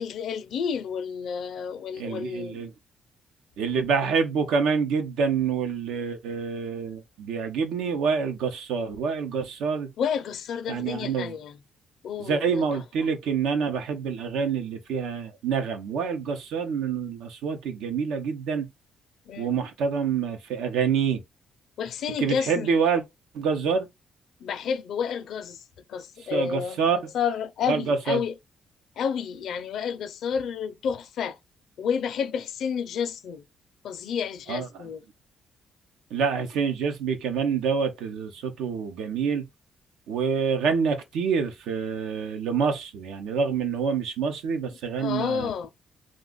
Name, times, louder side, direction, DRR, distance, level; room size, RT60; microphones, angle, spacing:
voice 1, 0.0-2.6 10.0-11.6 12.0-12.8 19.3-19.6 21.8-22.8 24.4-25.6 25.9-28.3 29.0-31.4 31.8-33.4 33.8-35.0 45.0-45.7, left 7 dB, 70° left, 0.5 m, -30 dB
voice 2, 1.9-2.7 3.6-9.9 10.7-11.3 12.2-18.7 19.4-21.2 22.2-23.0 23.3-23.9 26.3-27.1 27.7-28.2 34.5-34.7 36.1-39.5 40.1-45.5, right 6 dB, 90° right, 0.7 m, -27 dB
2.5 x 2.3 x 3.8 m
cardioid pair, 90°, 0 cm